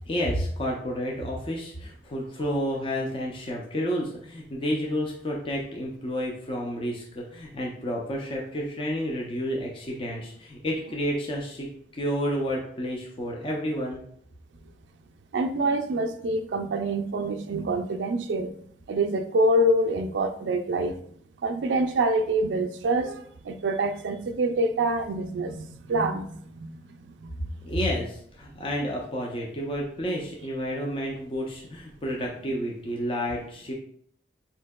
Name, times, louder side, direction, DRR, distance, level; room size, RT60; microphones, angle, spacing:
voice 1, 0.1-14.0 27.7-33.7, equal, 30° left, 0.4 m, -30 dB
voice 2, 15.3-18.5 18.9-20.9 21.4-26.4 27.2-27.4, right 1 dB, 85° right, 0.4 m, -26 dB
4.4 x 2.7 x 2.2 m
head